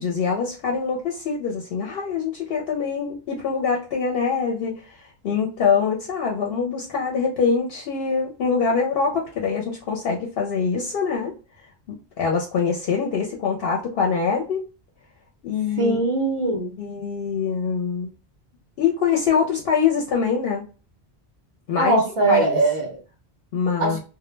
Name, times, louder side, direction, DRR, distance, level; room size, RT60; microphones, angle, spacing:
voice 1, 0.0-11.3 11.9-14.6 15.4-16.0 16.8-18.1 18.8-20.6 21.7-22.0 22.3-22.6 23.5-24.0, left 6 dB, 70° left, -1 dB, 0.7 m, -24 dB
voice 2, 15.8-16.7 21.8-23.0 23.8-24.0, right 3 dB, 40° right, 1 dB, 0.5 m, -21 dB
2.1 x 2.1 x 3.1 m, 0.34 s
omnidirectional pair, 1.1 m